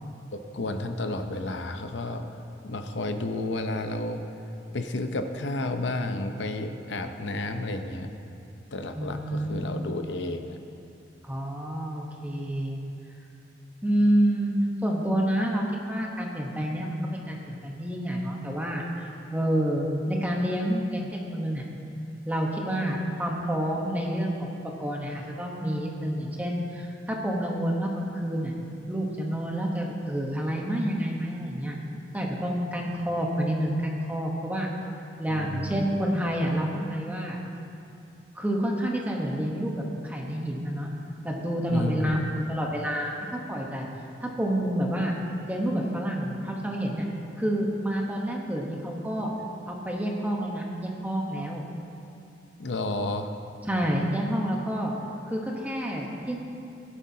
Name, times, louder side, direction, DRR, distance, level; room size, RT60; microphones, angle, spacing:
voice 1, 0.3-2.2 2.6-4.2 4.7-8.1 8.7-10.6 35.3-35.9 41.7-42.2 52.6-53.3, left 2 dB, 80° left, 6 dB, 0.7 m, -31 dB
voice 2, 8.9-10.0 11.2-12.8 13.8-21.6 22.3-24.5 24.8-28.5 28.9-31.8 32.1-34.7 35.2-37.4 38.3-40.9 41.2-43.9 44.2-45.1 45.4-47.1 47.4-49.3 49.7-51.6 53.7-54.9 55.3-56.4, equal, 10° right, -1 dB, 1.1 m, -28 dB
16.0 x 11.5 x 2.8 m, 2.7 s
head